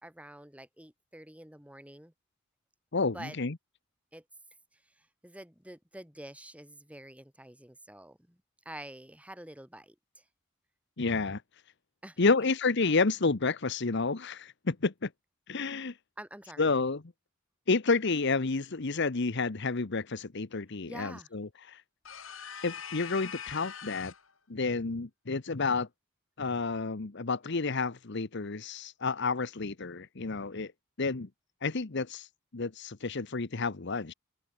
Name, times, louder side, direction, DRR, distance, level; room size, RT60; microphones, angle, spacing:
voice 1, 0.0-2.1 3.1-3.4 4.1-4.2 4.7-10.2 12.0-12.3 16.2-16.7 20.9-21.3, right 1 dB, 5° right, 4.6 m, -48 dB
voice 2, 2.9-3.5 11.0-11.4 12.2-15.1 15.5-15.9 16.6-17.0 17.7-21.8 22.6-24.1 24.5-25.9 26.4-30.7 31.0-31.3 31.6-32.3 32.5-34.1, left 4 dB, 60° left, 1.0 m, -30 dB
sound 1, 22.0-24.3, left 8 dB, 80° left, 4.2 m, -42 dB
open air
head